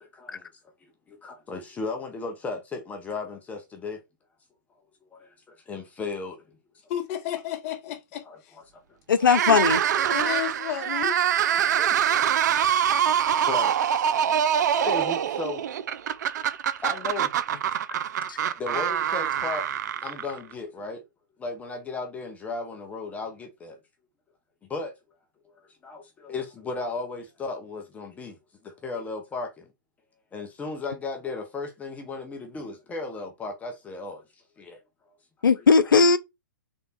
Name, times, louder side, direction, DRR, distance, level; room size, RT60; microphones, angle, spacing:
voice 1, 0.0-0.5 0.8-4.0 5.1-6.4 8.3-8.4 10.0-10.3 11.6-12.5 13.3-14.1 14.4-15.6 16.8-17.6 18.4-19.7 20.0-21.0 21.4-23.8 24.7-24.9 25.8-28.4 28.6-29.7 30.3-34.2 34.6-34.8 35.5-35.6, left 3 dB, 15° left, 1.0 m, -35 dB
voice 2, 6.9-8.6 9.5-9.6 10.1-11.2, left 11 dB, 45° left, 0.9 m, -32 dB
voice 3, 9.1-9.8 18.3-18.4 35.4-36.2, left 5 dB, 85° left, 0.6 m, -18 dB
sound 1, 9.2-20.5, right 9 dB, 60° right, 0.5 m, -24 dB
3.7 x 3.4 x 4.2 m
hypercardioid pair, 130°, 11 cm